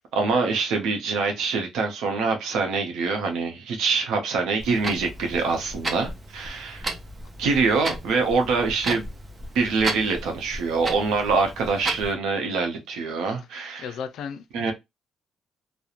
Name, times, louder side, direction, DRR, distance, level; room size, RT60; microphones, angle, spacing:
voice 1, 0.1-6.9 7.4-9.0 9.5-13.9 14.5-14.7, right 4 dB, 85° right, 0.6 m, -25 dB
Clock, 4.6-12.1, right 2 dB, 30° right, 0.6 m, -34 dB
voice 2, 13.8-14.7, left 7 dB, 75° left, 0.3 m, -35 dB
2.4 x 2.0 x 2.8 m
cardioid pair, 90°, 0 cm